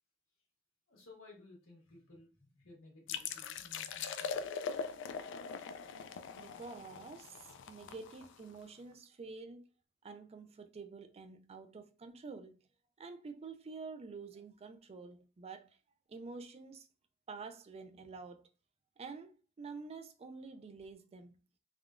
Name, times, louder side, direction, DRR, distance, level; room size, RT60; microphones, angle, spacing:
voice 1, 0.9-4.7, left 2 dB, 80° left, 1.4 m, -58 dB
sound 1, 3.1-8.6, left 6 dB, 60° left, 0.3 m, -42 dB
voice 2, 6.0-9.6 10.0-12.6 13.0-15.8 16.1-16.9 17.3-18.5 19.0-21.4, right 4 dB, 30° right, 0.3 m, -48 dB
3.5 x 2.2 x 2.4 m
head